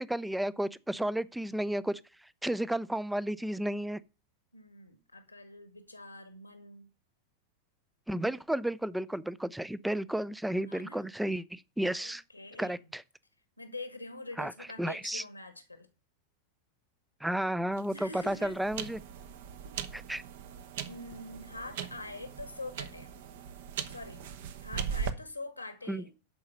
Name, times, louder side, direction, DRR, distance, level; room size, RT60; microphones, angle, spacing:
voice 1, 0.0-2.0 2.4-4.0 8.1-12.2 12.6-13.0 14.4-14.5 14.8-15.2 17.2-19.0 19.9-20.2 25.9-26.0, right 1 dB, 5° right, 0.4 m, -32 dB
voice 2, 4.5-6.9 10.7-11.0 12.0-12.9 13.6-15.9 17.9-18.6 20.8-23.1 23.9-24.2 24.6-26.1, left 2 dB, 85° left, 1.4 m, -44 dB
sound 1, 17.7-25.1, right 8 dB, 55° right, 0.9 m, -40 dB
11.5 x 4.8 x 6.4 m
figure-of-eight pair, 90°, 0 cm